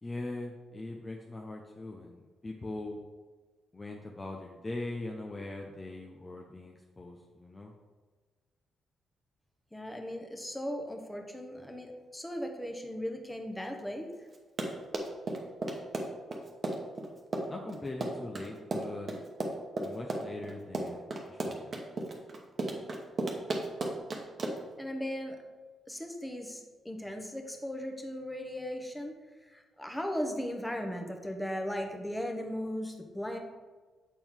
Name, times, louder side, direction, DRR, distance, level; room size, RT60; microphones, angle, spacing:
voice 1, 0.0-3.0 3.7-7.7 17.4-19.1 19.8-21.8, left 2 dB, 30° left, 1 dB, 0.7 m, -41 dB
voice 2, 9.7-14.1 24.8-25.4 25.9-29.1 29.5-33.4, equal, 10° left, 4 dB, 1.1 m, -37 dB
Run, 14.3-24.8, right 2 dB, 45° right, 1.0 m, -34 dB
7.3 x 4.3 x 3.6 m, 1.4 s
hypercardioid pair, 40°, 0 cm